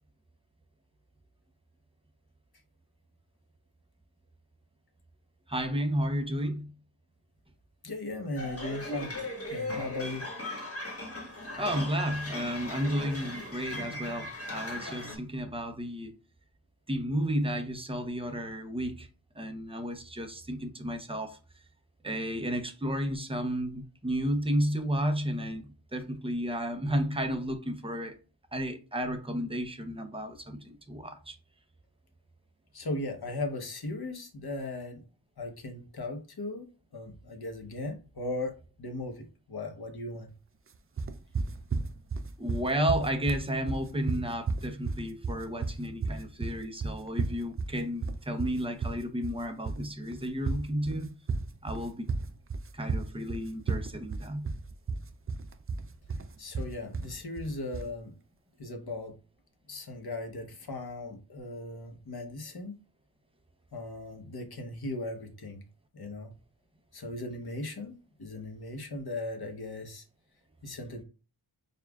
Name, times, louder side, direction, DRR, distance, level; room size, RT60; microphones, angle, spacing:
voice 1, 5.5-6.7 11.6-16.1 16.9-19.1 19.4-21.4 22.0-28.1 28.5-31.3 42.4-51.1 51.6-52.1 52.7-54.5, equal, 10° right, 0.7 m, -32 dB
voice 2, 7.8-9.2 9.5-10.3 32.7-35.0 35.4-36.7 36.9-40.3 56.4-58.1 58.6-59.2 59.7-62.8 63.7-65.6 65.9-66.3 66.9-70.0 70.6-71.0, left 2 dB, 50° left, 1.0 m, -37 dB
sound 1, 8.4-15.2, left 1 dB, 30° left, 1.2 m, -38 dB
sound 2, 41.0-57.9, right 4 dB, 30° right, 0.3 m, -33 dB
6.6 x 2.4 x 2.3 m
wide cardioid pair, 80°, 47 cm